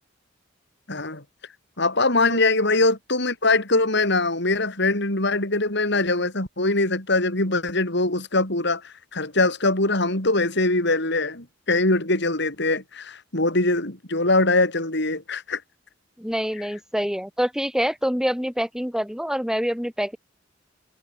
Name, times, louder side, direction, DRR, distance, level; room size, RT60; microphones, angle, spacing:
voice 1, 0.9-1.2 1.8-15.6, left 2 dB, 65° left, 7.4 m, -22 dB
voice 2, 16.2-20.2, equal, 5° right, 3.2 m, -26 dB
head